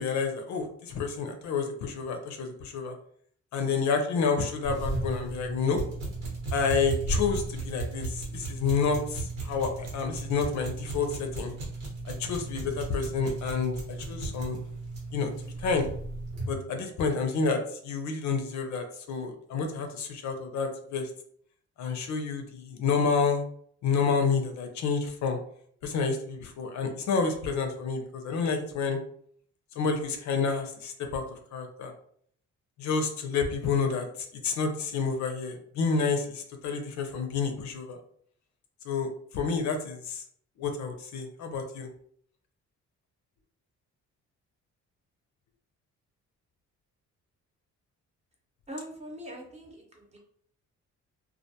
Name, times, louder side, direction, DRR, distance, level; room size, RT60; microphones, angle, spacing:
voice 1, 0.0-2.9 3.5-5.8 6.5-11.5 12.0-13.7 14.1-14.6 15.1-15.3 15.6-15.9 16.5-21.1 21.8-23.5 23.8-25.4 25.8-29.0 29.8-31.9 32.8-34.1 34.4-38.0 38.9-40.2 40.6-41.9, left 5 dB, 70° left, 4 dB, 0.5 m, -29 dB
sound 1, 4.6-16.5, right 2 dB, 85° right, 1.1 m, -35 dB
voice 2, 48.7-50.2, equal, 20° right, -1 dB, 0.8 m, -42 dB
2.3 x 2.2 x 2.7 m, 0.62 s
cardioid pair, 90°, 30 cm